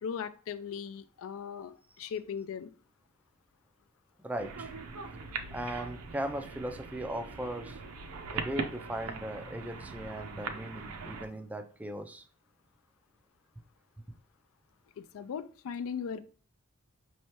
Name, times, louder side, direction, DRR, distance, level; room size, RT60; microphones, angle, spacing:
voice 1, 0.0-2.7 15.0-16.2, left 7 dB, 65° left, 0.3 m, -38 dB
voice 2, 4.2-4.7 5.5-7.8 8.3-12.3, right 1 dB, 5° right, 0.3 m, -38 dB
sound 1, 4.4-11.3, right 4 dB, 70° right, 0.6 m, -41 dB
5.5 x 3.2 x 2.9 m
head